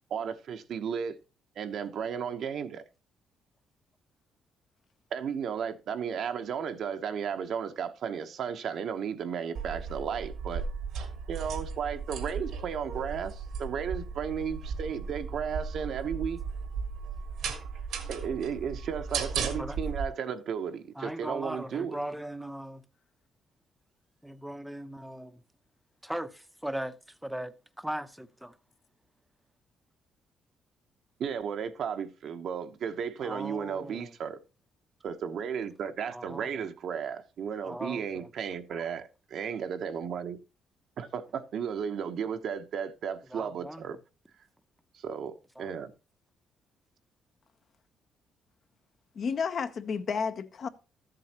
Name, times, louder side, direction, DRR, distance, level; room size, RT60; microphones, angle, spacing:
voice 1, 0.1-1.2 1.6-2.8 5.1-10.6 11.3-16.4 18.1-22.0 31.2-34.4 35.0-40.4 41.0-44.0 44.9-45.9, right 7 dB, 65° right, 0.9 m, -34 dB
sound 1, 9.5-20.0, right 5 dB, 80° right, 1.5 m, -36 dB
voice 2, 21.0-22.8 24.2-25.4 26.0-27.0 27.2-28.5 33.2-34.1 36.1-36.7 37.6-38.3 43.3-44.0 45.6-45.7, right 1 dB, 5° right, 0.7 m, -38 dB
voice 3, 49.1-50.7, left 6 dB, 50° left, 0.8 m, -31 dB
13.0 x 7.7 x 2.9 m
cardioid pair, 115°, 0 cm